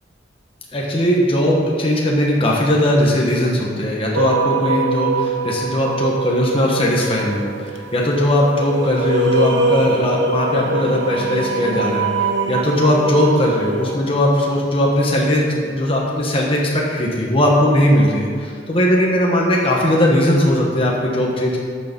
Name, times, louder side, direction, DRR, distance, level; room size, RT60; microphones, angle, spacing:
voice 1, 0.7-12.1 12.5-21.6, left 1 dB, 30° left, -2 dB, 1.4 m, -18 dB
sound 1, 4.1-14.0, right 3 dB, 85° right, 0.9 m, -23 dB
13.0 x 6.7 x 5.4 m, 2.1 s
head